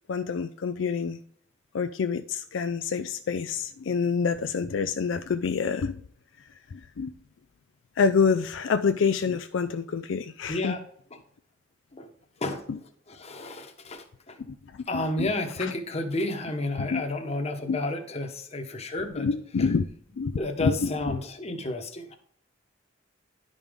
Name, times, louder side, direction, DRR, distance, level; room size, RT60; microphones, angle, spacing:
voice 1, 0.1-1.2 1.7-6.0 6.7-7.1 8.0-10.8 12.7-12.8 14.9-15.8 16.8-17.0 17.7-17.8 19.1-19.8 20.2-21.2, left 5 dB, 75° left, 9 dB, 0.4 m, -27 dB
voice 2, 10.5-10.8 11.1-11.2 11.9-12.1 12.4-14.4 14.9-19.3 19.6-19.7 20.4-22.2, left 2 dB, 35° left, 5 dB, 1.1 m, -32 dB
11.0 x 5.3 x 3.6 m, 0.64 s
head